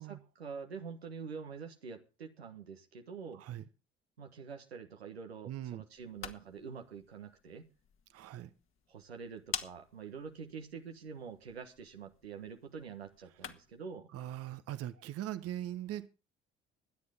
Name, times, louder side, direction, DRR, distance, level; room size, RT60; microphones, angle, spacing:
voice 1, 0.0-3.4 4.2-7.7 8.9-14.1, right 6 dB, 85° right, 1.4 m, -46 dB
voice 2, 3.3-3.6 5.5-5.8 8.1-8.5 14.1-16.1, right 12 dB, 50° right, 1.0 m, -40 dB
sound 1, 5.9-13.9, left 7 dB, 45° left, 1.8 m, -48 dB
23.0 x 9.6 x 3.6 m
figure-of-eight pair, 50°, 30 cm